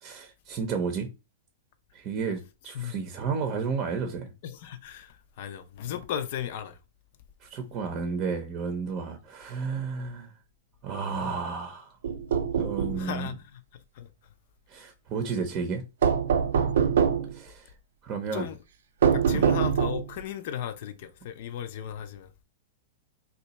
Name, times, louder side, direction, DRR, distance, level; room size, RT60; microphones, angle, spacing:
voice 1, 0.0-1.1 1.9-4.3 7.4-10.3 10.8-12.0 12.6-13.3 14.7-15.8 17.3-17.7 18.0-18.5 19.3-19.4, right 5 dB, 35° right, 0.6 m, -32 dB
voice 2, 4.4-6.8 13.0-13.6 14.0-14.1 18.3-18.6 19.1-22.3, left 9 dB, 60° left, 0.5 m, -36 dB
sound 1, 12.0-13.0 16.0-17.3 19.0-20.2, right 7 dB, 75° right, 0.4 m, -24 dB
2.8 x 2.3 x 4.1 m
hypercardioid pair, 110°, 0 cm